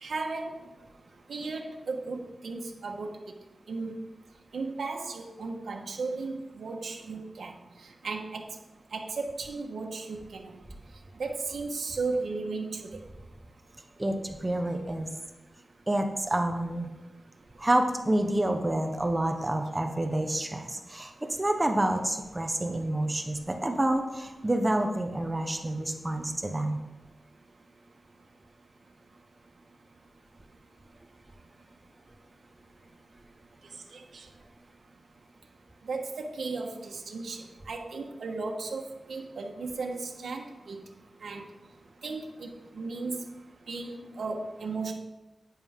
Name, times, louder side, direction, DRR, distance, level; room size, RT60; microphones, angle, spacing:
voice 1, 0.0-0.6 1.3-3.1 3.7-3.9 4.5-7.5 8.0-8.4 8.9-10.5 11.2-12.8 33.9-34.2 35.9-37.4 37.7-38.8 39.1-40.8 41.2-41.4 42.0-43.3 43.7-44.9, right 3 dB, 90° right, 1 dB, 1.3 m, -35 dB
voice 2, 14.0-15.1 15.9-16.9 17.6-26.8, right 1 dB, 20° right, 5 dB, 0.9 m, -28 dB
10.5 x 9.3 x 3.6 m, 1.1 s
wide cardioid pair, 110°, 0 cm